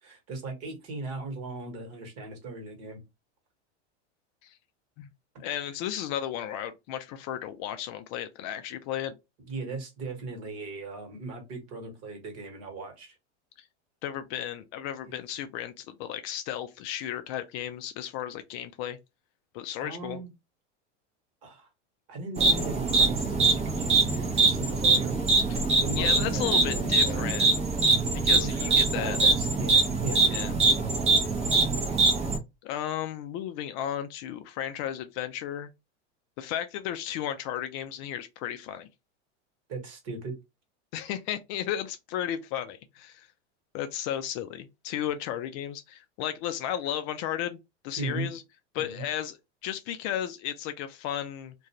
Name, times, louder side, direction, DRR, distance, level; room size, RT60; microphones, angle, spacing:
voice 1, 0.0-3.0 9.5-13.1 15.0-15.1 19.8-20.3 21.4-21.7 22.1-25.1 25.8-27.3 27.9-28.0 28.3-30.2 39.7-40.3 48.0-48.3 48.8-49.0, right 3 dB, 45° right, 1.3 m, -38 dB
voice 2, 5.4-9.1 13.6-13.7 14.0-19.0 19.5-20.2 25.5-25.6 26.0-27.5 28.2-29.2 30.3-30.5 32.6-35.7 36.4-38.9 40.9-43.3 43.7-47.6 47.8-48.4 48.7-51.5, left 11 dB, 45° left, 0.4 m, -34 dB
sound 1, 22.4-32.4, right 3 dB, 20° right, 0.7 m, -23 dB
2.4 x 2.2 x 2.8 m
hypercardioid pair, 115°, 35 cm